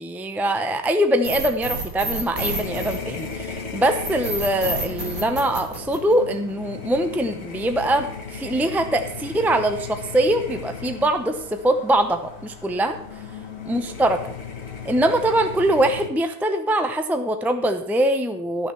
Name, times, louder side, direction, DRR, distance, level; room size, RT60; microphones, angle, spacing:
voice 1, 0.0-13.0 13.7-14.3 14.8-18.7, right 1 dB, ahead, 7 dB, 0.4 m, -23 dB
sound 1, 1.2-3.5 4.0-6.5, right 2 dB, 75° right, 3.5 m, -29 dB
sound 2, 2.3-16.1, left 6 dB, 50° left, 1.6 m, -36 dB
12.5 x 6.5 x 6.9 m, 0.69 s
omnidirectional pair, 1.5 m